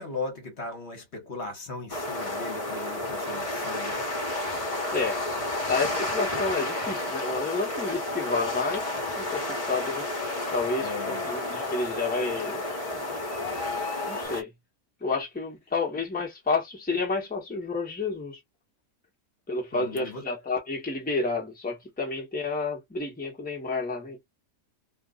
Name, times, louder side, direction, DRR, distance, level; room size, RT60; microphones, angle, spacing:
voice 1, 0.0-4.1 10.8-11.3 19.7-20.3, left 3 dB, 55° left, 1.3 m, -38 dB
sound 1, 1.9-14.4, left 1 dB, 25° left, 1.1 m, -31 dB
sound 2, 3.2-14.3, left 6 dB, 75° left, 1.0 m, -43 dB
voice 2, 4.9-5.2 5.7-10.1 10.5-12.6 12.9-13.2 14.1-14.5 15.0-18.4 19.5-24.2, left 3 dB, 5° left, 1.0 m, -30 dB
2.6 x 2.4 x 3.7 m
omnidirectional pair, 1.4 m